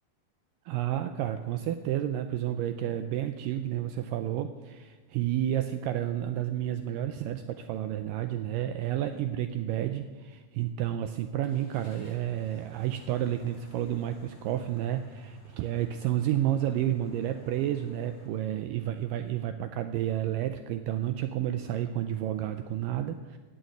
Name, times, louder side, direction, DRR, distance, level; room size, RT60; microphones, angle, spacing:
voice 1, 0.7-23.4, right 12 dB, 90° right, 9 dB, 1.9 m, -31 dB
sound 1, 11.4-18.3, right 2 dB, 45° left, 3.9 m, -52 dB
15.5 x 6.5 x 9.4 m, 1.3 s
omnidirectional pair, 4.5 m